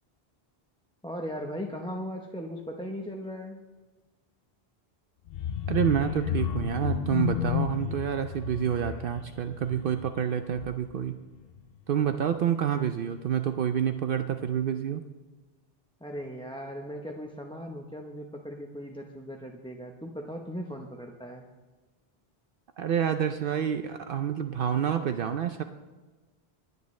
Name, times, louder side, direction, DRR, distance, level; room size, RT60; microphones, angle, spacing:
voice 1, 1.0-3.6 16.0-21.4, equal, 5° left, 1 dB, 0.7 m, -38 dB
sound 1, 5.3-11.0 11.4-11.7 12.0-12.1, left 9 dB, 70° left, 0.8 m, -32 dB
voice 2, 5.7-11.2 11.9-15.0 22.8-25.6, right 9 dB, 65° right, 8 dB, 0.7 m, -28 dB
26.5 x 9.6 x 3.2 m, 1.3 s
omnidirectional pair, 1.0 m